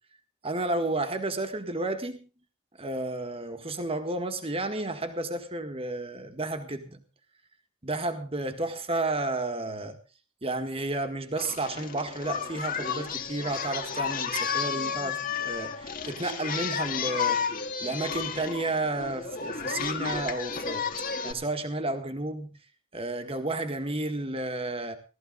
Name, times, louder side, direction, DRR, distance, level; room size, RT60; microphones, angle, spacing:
voice 1, 0.4-2.3 2.8-7.0 7.8-10.0 10.4-17.4 17.8-20.9 21.2-22.5 22.9-25.0, right 2 dB, 30° right, 1.7 m, -32 dB
Singing, 11.4-21.3, left 6 dB, 45° left, 1.9 m, -32 dB
17.5 x 13.5 x 3.9 m
head